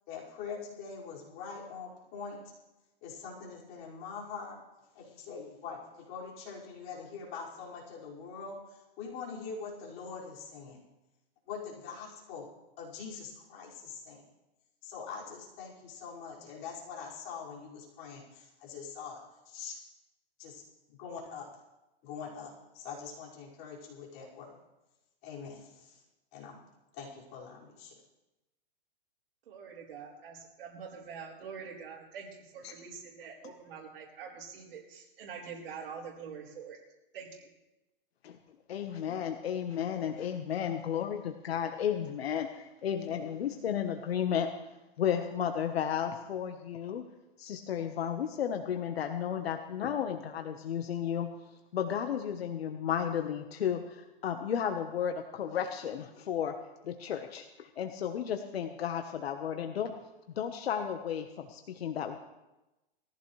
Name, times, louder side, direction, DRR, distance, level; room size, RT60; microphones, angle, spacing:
voice 1, 0.1-2.4 3.0-4.6 4.9-10.8 11.5-12.5 12.8-14.2 14.8-19.8 20.4-20.6 20.9-21.5 22.0-24.6 25.2-26.0 26.3-26.6 26.9-28.0, left 5 dB, 40° left, -5 dB, 5.5 m, -43 dB
voice 2, 29.5-36.8 37.1-37.5, right 6 dB, 65° right, -5 dB, 4.3 m, -45 dB
voice 3, 38.7-47.1 47.4-51.3 51.7-56.5 56.8-59.9 60.3-62.2, left 8 dB, 85° left, 5 dB, 1.3 m, -33 dB
20.5 x 15.0 x 3.3 m, 0.99 s
hypercardioid pair, 150°, 30 cm